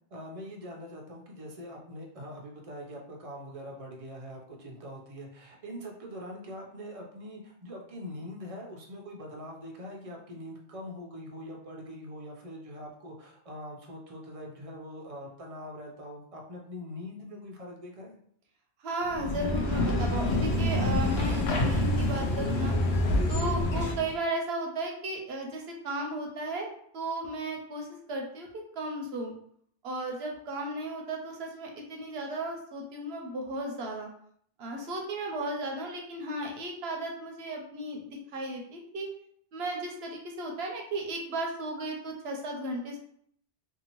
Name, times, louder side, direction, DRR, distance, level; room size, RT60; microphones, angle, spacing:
voice 1, 0.1-18.1, equal, 45° right, 0 dB, 0.5 m, -43 dB
voice 2, 18.8-22.8 23.3-29.4 29.8-34.1 34.6-39.1 39.5-43.0, right 1 dB, 65° right, 1 dB, 0.8 m, -35 dB
sound 1, 19.1-24.1, left 1 dB, 70° left, 0.8 m, -27 dB
2.7 x 2.6 x 2.9 m, 0.65 s
omnidirectional pair, 1.2 m